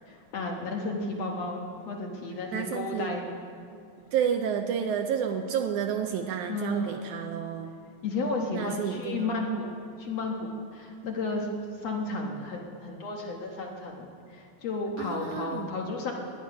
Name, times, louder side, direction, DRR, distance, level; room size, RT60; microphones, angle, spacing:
voice 1, 0.1-3.2 6.5-7.1 8.0-11.5 11.7-16.1, left 3 dB, 60° left, 0 dB, 2.0 m, -33 dB
voice 2, 2.5-3.2 4.1-7.7 8.5-9.5 15.0-15.7, right 8 dB, 75° right, 6 dB, 1.9 m, -30 dB
19.0 x 10.5 x 5.8 m, 2.4 s
omnidirectional pair, 3.9 m